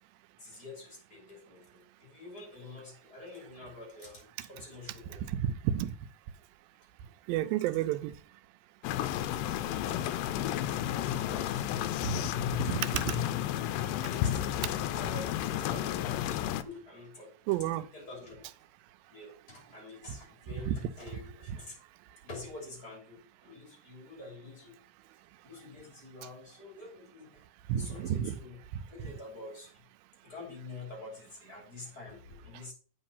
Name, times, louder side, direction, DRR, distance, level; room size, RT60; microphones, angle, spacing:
voice 1, 0.4-5.3 9.1-11.7 12.1-12.4 14.0-18.4 19.1-21.8 22.2-24.8 25.4-27.4 27.7-28.6 28.9-29.8 30.2-32.7, left 3 dB, 25° left, 3.4 m, -47 dB
voice 2, 5.3-5.9 7.3-8.1 12.1-13.2 17.5-17.9 20.7-20.8 27.7-28.4, right 11 dB, 90° right, 2.4 m, -31 dB
sound 1, 8.8-16.6, left 12 dB, 85° left, 2.2 m, -32 dB
8.6 x 5.4 x 5.5 m
omnidirectional pair, 4.0 m